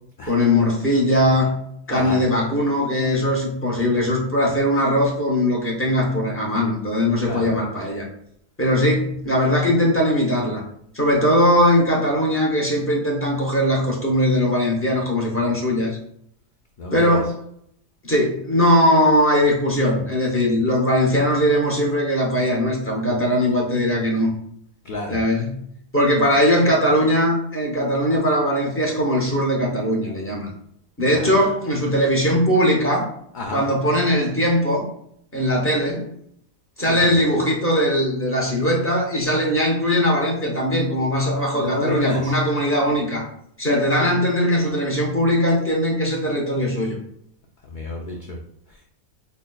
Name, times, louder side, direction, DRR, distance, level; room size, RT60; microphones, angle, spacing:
voice 1, 0.3-1.6 1.9-8.0 8.6-10.6 10.9-16.0 16.9-17.3 18.1-24.3 25.1-25.7 25.9-30.5 31.0-33.1 33.5-34.9 35.3-36.1 36.8-43.2 43.6-47.0, equal, 15° left, -2 dB, 0.4 m, -20 dB
voice 2, 1.9-2.2 7.2-7.5 16.8-17.2 24.8-25.2 31.1-31.6 33.3-33.7 36.8-37.2 41.5-42.4 43.6-44.1 47.6-48.4 48.7-48.8, left 2 dB, 85° left, -1 dB, 0.4 m, -30 dB
5.3 x 2.1 x 2.3 m, 0.71 s
omnidirectional pair, 1.5 m